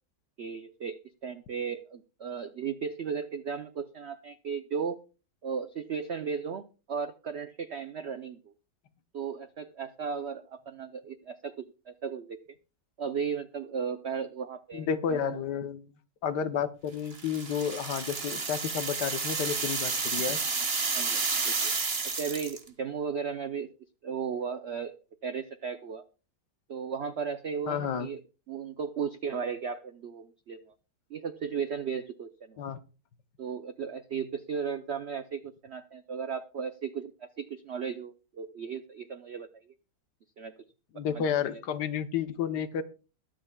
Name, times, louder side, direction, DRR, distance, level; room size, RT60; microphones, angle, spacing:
voice 1, 0.4-5.0 5.4-8.5 9.1-12.4 13.0-15.4 20.9-21.7 22.0-23.7 24.0-24.9 25.2-26.0 26.7-28.2 28.5-30.6 31.1-32.6 33.4-39.6 40.4-40.5 40.9-41.2 41.5-41.6, right 6 dB, 80° right, 11 dB, 0.6 m, -35 dB
voice 2, 14.7-15.9 16.2-20.4 27.7-28.1 32.6-32.8 40.9-42.8, left 8 dB, 70° left, 12 dB, 1.4 m, -31 dB
sound 1, 17.1-22.7, right 4 dB, 35° right, 1.5 m, -31 dB
22.0 x 7.6 x 2.2 m, 0.34 s
omnidirectional pair, 1.9 m